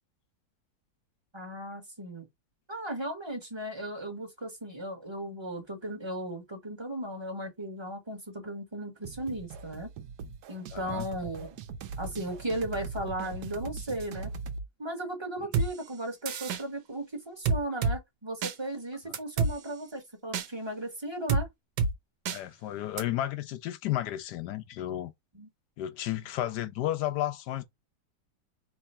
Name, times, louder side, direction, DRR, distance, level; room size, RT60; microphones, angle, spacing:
voice 1, 1.3-2.3 2.7-9.9 10.5-11.6 12.0-14.3 14.8-21.5 25.3-25.5, right 1 dB, 15° right, 1.2 m, -36 dB
sound 1, 9.0-14.7, right 5 dB, 70° right, 1.2 m, -40 dB
voice 2, 10.7-11.1 22.3-25.1 25.8-27.6, left 13 dB, 75° left, 1.2 m, -32 dB
sound 2, 15.5-15.7 16.3-16.6 17.5-18.0 18.4-18.5 19.1-19.5 20.3-20.5 21.3-21.4 21.8-21.9 22.3-22.4 23.0-23.1, right 4 dB, 85° right, 1.4 m, -26 dB
3.5 x 3.0 x 4.3 m
omnidirectional pair, 1.9 m